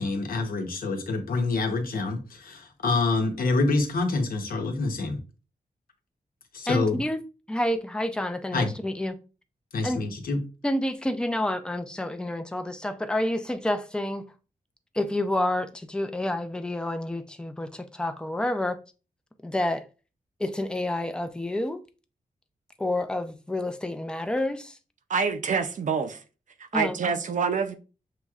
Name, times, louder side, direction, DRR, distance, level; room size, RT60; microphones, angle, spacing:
voice 1, 0.0-5.2 6.5-7.0 8.5-8.7 9.7-10.4, left 3 dB, 85° left, 1.0 m, -26 dB
voice 2, 6.7-7.2 7.5-9.2 9.8-10.0 10.6-14.3 14.9-18.8 19.4-19.8 20.4-21.8 22.8-24.7 26.7-27.0, left 1 dB, 5° left, 0.5 m, -29 dB
voice 3, 25.1-26.2 26.7-27.8, right 5 dB, 60° right, 0.6 m, -26 dB
6.7 x 3.1 x 2.4 m
wide cardioid pair, 140°, 15 cm